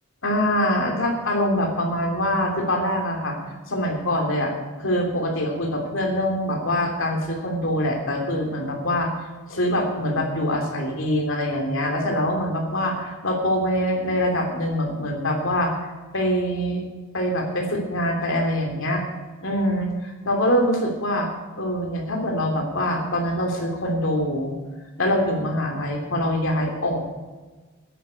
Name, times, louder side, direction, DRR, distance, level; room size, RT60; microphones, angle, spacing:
voice 1, 0.2-3.4 3.7-4.5 4.8-15.7 16.1-16.8 17.1-19.0 19.4-21.3 21.6-24.5 25.0-27.1, equal, 60° left, 1 dB, 3.0 m, -24 dB
10.0 x 9.6 x 8.1 m, 1.3 s
head